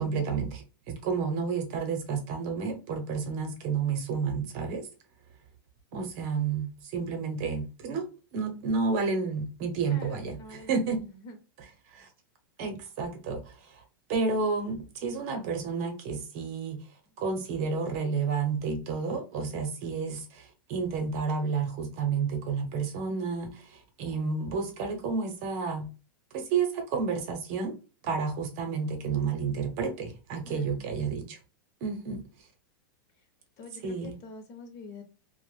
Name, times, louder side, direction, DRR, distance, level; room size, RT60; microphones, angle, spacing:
voice 1, 0.0-4.9 5.9-11.0 11.9-12.1 12.6-13.8 14.1-16.8 17.2-25.9 26.3-27.7 28.0-31.4 31.8-32.2 33.8-34.2, right 5 dB, 45° right, 0.8 m, -31 dB
voice 2, 9.9-11.4 30.4-30.8 33.6-35.0, left 2 dB, 35° left, 0.7 m, -46 dB
2.4 x 2.1 x 3.2 m
supercardioid pair, 150°, 12 cm